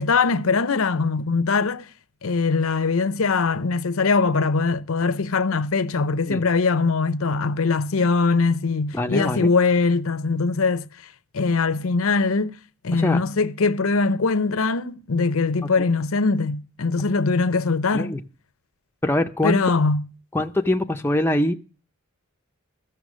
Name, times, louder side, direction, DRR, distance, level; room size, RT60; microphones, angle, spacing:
voice 1, 0.0-1.9 2.2-10.9 11.3-12.6 12.8-18.1 19.4-20.0, left 4 dB, 70° left, 0.6 m, -22 dB
voice 2, 8.9-9.5 12.9-13.2 15.8-15.9 17.9-18.2 19.0-19.6 20.3-21.5, left 1 dB, 10° left, 0.5 m, -23 dB
14.0 x 6.9 x 6.2 m
head